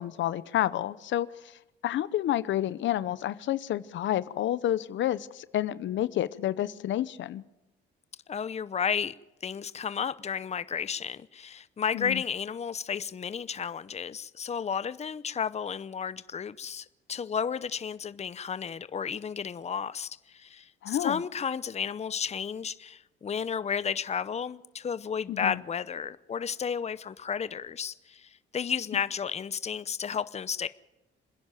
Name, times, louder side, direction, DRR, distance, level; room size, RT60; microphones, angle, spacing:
voice 1, 0.0-1.5 1.8-7.4 11.9-12.2 20.8-21.2 25.3-25.6, left 12 dB, 70° left, 0.8 m, -29 dB
voice 2, 8.3-9.1 9.4-30.7, left 7 dB, 35° left, 0.8 m, -33 dB
27.0 x 10.5 x 9.1 m
cardioid pair, 90°, 20 cm